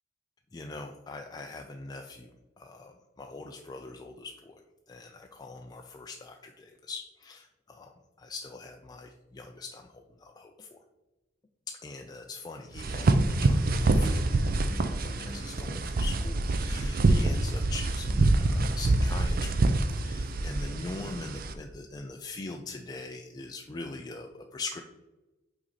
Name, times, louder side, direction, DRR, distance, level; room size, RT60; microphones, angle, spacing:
voice 1, 0.5-4.6 4.9-7.9 8.2-10.8 11.8-19.5 19.9-24.8, left 3 dB, 20° left, 3 dB, 0.4 m, -42 dB
sound 1, 12.8-21.5, right 2 dB, 50° right, 0.5 m, -26 dB
5.8 x 4.0 x 4.1 m, 1.1 s
head